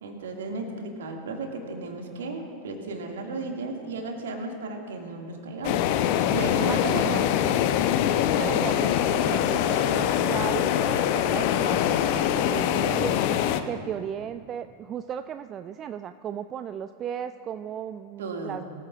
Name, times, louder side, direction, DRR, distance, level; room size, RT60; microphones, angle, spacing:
voice 1, 0.0-5.9 6.3-6.8 18.2-18.6, right 3 dB, 60° right, 2 dB, 2.0 m, -34 dB
sound 1, 5.6-13.6, left 10 dB, 45° left, 0.7 m, -23 dB
voice 2, 6.6-7.3 8.4-13.2 13.7-18.6, right 9 dB, 30° right, 11 dB, 0.3 m, -35 dB
22.5 x 14.5 x 2.4 m, 2.3 s
figure-of-eight pair, 90°, 0 cm